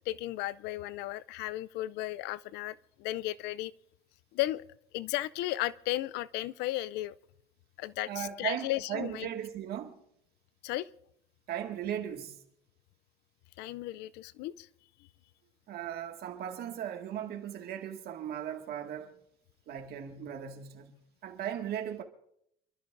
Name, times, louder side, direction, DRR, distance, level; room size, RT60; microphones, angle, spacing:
voice 1, 0.0-3.7 4.3-4.6 4.9-7.2 7.8-9.3 10.6-10.9 13.6-14.7, left 16 dB, 90° left, 0.5 m, -35 dB
voice 2, 8.1-10.0 11.5-12.4 15.7-19.1 19.7-20.9 21.2-22.0, right 10 dB, 70° right, 1.9 m, -37 dB
28.0 x 12.5 x 2.6 m
cardioid pair, 110°, 17 cm